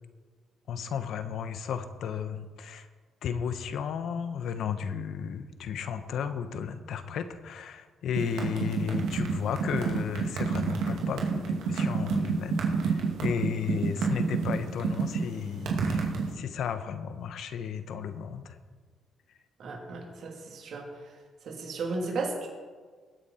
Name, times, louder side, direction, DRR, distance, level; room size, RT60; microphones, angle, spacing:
voice 1, 0.7-2.9 3.2-18.6, left 7 dB, 75° left, 10 dB, 1.0 m, -34 dB
sound 1, 8.2-16.3, right 5 dB, 85° right, 2.2 m, -28 dB
voice 2, 19.6-20.8 21.4-22.5, right 3 dB, 65° right, 0 dB, 3.0 m, -34 dB
20.0 x 8.6 x 4.3 m, 1.5 s
cardioid pair, 90°, 0 cm